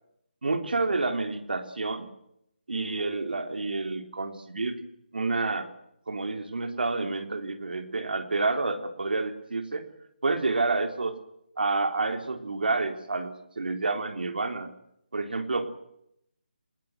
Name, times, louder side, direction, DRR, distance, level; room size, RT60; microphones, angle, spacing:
voice 1, 0.4-2.1 2.7-4.8 5.1-5.7 6.1-9.9 10.2-11.2 11.6-14.7 15.1-15.7, right 3 dB, 70° right, 6 dB, 3.8 m, -29 dB
26.5 x 20.0 x 8.1 m, 0.77 s
hypercardioid pair, 175°, 5 cm